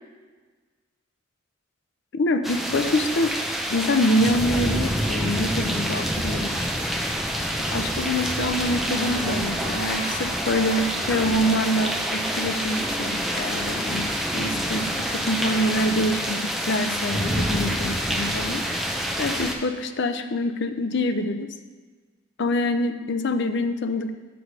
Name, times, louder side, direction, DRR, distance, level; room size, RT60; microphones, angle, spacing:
voice 1, 2.1-3.3 3.7-6.7 7.7-21.5 22.4-24.1, left 1 dB, 60° left, 8 dB, 0.5 m, -26 dB
sound 1, 2.4-19.5, equal, ahead, 0.5 m, -27 dB
sound 2, 8.9-11.8, right 2 dB, 40° right, 1.1 m, -38 dB
6.1 x 4.7 x 6.7 m, 1.4 s
head